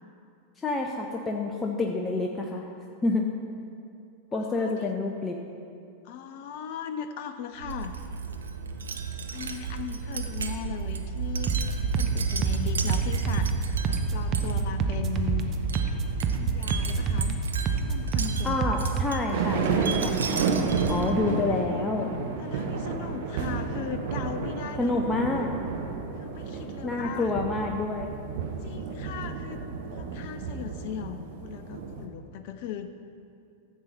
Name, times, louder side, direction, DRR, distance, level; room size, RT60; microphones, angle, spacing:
voice 1, 0.6-2.7 3.0-3.2 4.3-5.4 18.4-20.4 20.9-22.1 24.8-25.5 26.8-28.1, left 3 dB, 15° left, 1 dB, 0.8 m, -28 dB
voice 2, 4.3-4.9 6.0-7.9 9.3-11.6 11.8-15.5 16.4-17.4 17.8-18.7 21.5-21.9 22.4-24.9 26.2-27.3 28.6-29.6 29.9-32.9, left 9 dB, 50° left, 9 dB, 0.5 m, -38 dB
Wind chime, 7.6-21.3, right 5 dB, 70° right, 0.7 m, -33 dB
sound 1, 11.5-19.1, right 5 dB, 30° right, 0.8 m, -28 dB
sound 2, 19.3-32.1, right 5 dB, 55° right, 1.1 m, -31 dB
14.5 x 7.9 x 4.3 m, 2.5 s
figure-of-eight pair, 90°, 0 cm